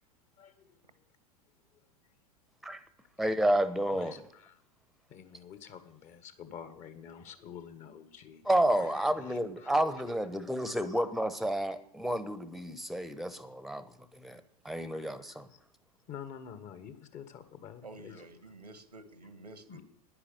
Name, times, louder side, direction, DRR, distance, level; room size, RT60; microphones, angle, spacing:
voice 1, 0.4-0.7 3.9-4.5 5.1-8.4 8.8-9.7 14.9-15.4 16.1-18.2 19.7-19.8, left 8 dB, 40° left, 1.6 m, -48 dB
voice 2, 3.2-4.2 8.4-15.5, right 1 dB, ahead, 1.0 m, -30 dB
voice 3, 17.8-19.8, right 2 dB, 90° right, 1.6 m, -50 dB
10.5 x 9.9 x 8.0 m
figure-of-eight pair, 85°, 20 cm